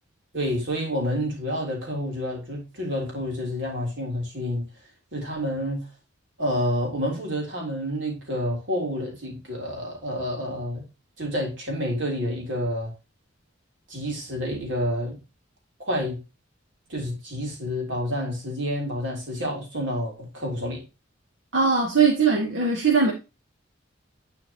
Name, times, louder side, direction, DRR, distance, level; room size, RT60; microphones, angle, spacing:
voice 1, 0.3-4.7 5.1-5.9 6.4-10.8 11.2-12.9 13.9-15.2 15.8-16.2 16.9-20.8, equal, 70° right, 3.7 m, -29 dB
voice 2, 21.5-23.1, right 5 dB, 85° right, 2.2 m, -20 dB
11.5 x 5.0 x 3.0 m
head